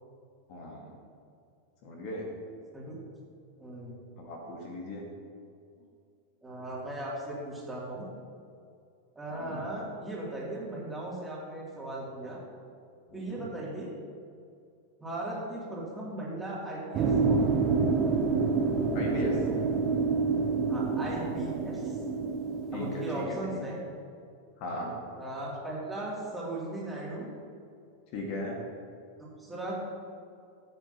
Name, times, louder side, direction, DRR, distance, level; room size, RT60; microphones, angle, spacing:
voice 1, 0.5-0.8 1.8-2.2 4.2-5.1 9.3-9.6 13.1-13.5 18.9-19.4 22.7-23.6 24.6-24.9 28.1-28.6, left 1 dB, 45° left, -1 dB, 1.9 m, -37 dB
voice 2, 3.6-3.9 6.4-8.1 9.1-12.4 13.1-13.9 15.0-17.5 20.7-22.0 22.7-23.8 25.2-27.3 29.4-29.8, right 1 dB, 10° right, -5 dB, 2.9 m, -37 dB
sound 1, 16.9-23.2, right 4 dB, 30° right, 1.1 m, -28 dB
16.5 x 8.1 x 3.0 m, 2.4 s
figure-of-eight pair, 90°, 0 cm